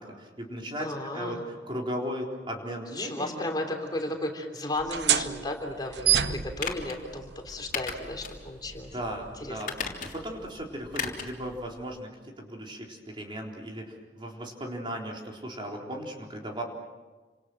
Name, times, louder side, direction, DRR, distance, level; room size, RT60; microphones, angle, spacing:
voice 1, 0.0-3.5 8.9-9.7 10.1-12.1 12.4-16.6, equal, 30° right, 0 dB, 3.9 m, -36 dB
voice 2, 0.8-1.4 2.9-8.9 9.4-9.6, left 1 dB, 25° left, 2 dB, 3.3 m, -34 dB
sound 1, 4.7-12.0, right 10 dB, 85° right, 1.0 m, -32 dB
sound 2, 6.6-7.0 7.7-8.4 8.8-8.9 9.6-10.3 10.9-11.4 11.7-11.8, left 6 dB, 50° left, 3.4 m, -35 dB
30.0 x 26.5 x 6.4 m, 1.3 s
head